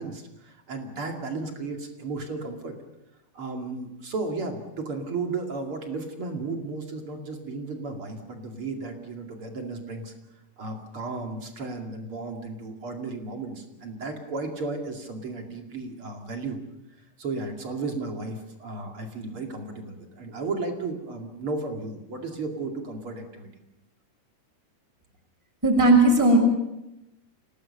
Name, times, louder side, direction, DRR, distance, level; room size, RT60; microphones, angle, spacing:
voice 1, 0.0-2.7 3.3-10.1 10.6-16.6 17.2-23.5, right 3 dB, 45° right, 3 dB, 3.0 m, -34 dB
voice 2, 25.6-26.4, right 2 dB, 5° right, -2 dB, 5.9 m, -17 dB
27.0 x 18.0 x 6.7 m, 0.91 s
omnidirectional pair, 3.8 m